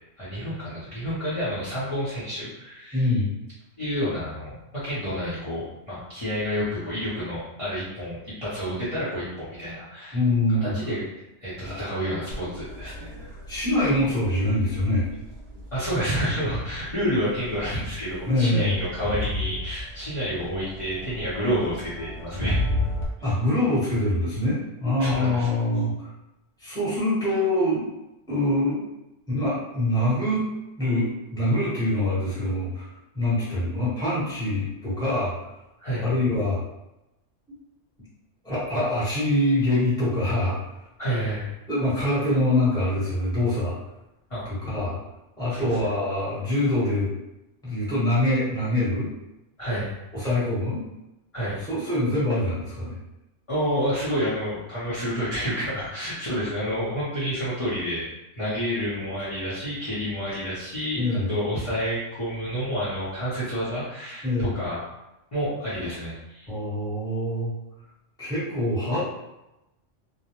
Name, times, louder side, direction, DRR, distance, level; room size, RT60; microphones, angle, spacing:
voice 1, 0.2-3.2 3.8-10.2 10.5-11.0 11.4-13.3 15.7-22.6 25.0-25.5 35.8-36.1 41.0-41.5 44.3-44.4 45.5-45.7 49.6-49.9 51.3-51.6 53.5-58.1 58.4-64.8 65.3-66.5, equal, 30° left, -12 dB, 0.8 m, -29 dB
voice 2, 2.9-3.3 10.1-10.7 13.5-15.1 18.2-18.8 23.2-26.1 26.6-27.9 28.3-28.8 29.3-30.5 30.8-32.9 33.1-35.3 36.0-36.6 38.4-40.6 41.7-43.7 44.4-45.0 45.4-47.1 47.6-49.1 50.1-50.8 51.6-53.0 61.0-61.3 64.2-64.5 66.5-67.5 68.2-69.0, left 1 dB, 5° left, -11 dB, 1.1 m, -24 dB
Crowd, 12.3-23.1, left 1 dB, 30° right, 0.5 m, -34 dB
2.3 x 2.1 x 2.9 m, 0.93 s
omnidirectional pair, 1.3 m